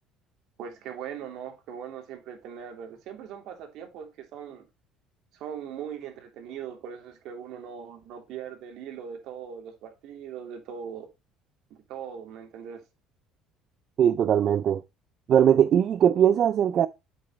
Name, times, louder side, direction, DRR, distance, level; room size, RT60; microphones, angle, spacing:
voice 1, 0.6-4.6 5.3-11.1 11.7-12.8, right 8 dB, 65° right, 3.0 m, -40 dB
voice 2, 14.0-14.8 15.3-16.9, right 9 dB, 45° right, 0.4 m, -20 dB
8.0 x 7.7 x 3.1 m
cardioid pair, 130°, 0 cm